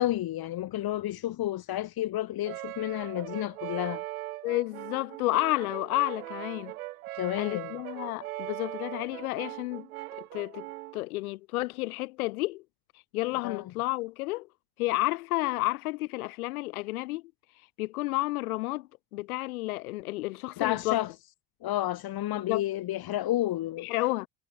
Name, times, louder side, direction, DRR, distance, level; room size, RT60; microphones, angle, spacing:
voice 1, 0.0-4.0 7.1-7.7 13.4-13.6 20.6-21.1 21.6-23.9, left 14 dB, 60° left, 3.6 m, -31 dB
Brass instrument, 2.4-11.0, right 17 dB, 85° right, 2.0 m, -40 dB
voice 2, 4.4-6.7 7.4-9.9 10.3-10.7 10.9-12.6 13.1-14.5 14.8-17.2 17.8-21.0 22.3-22.7 23.8-24.3, left 20 dB, 85° left, 4.3 m, -31 dB
hypercardioid pair, 70°, 42 cm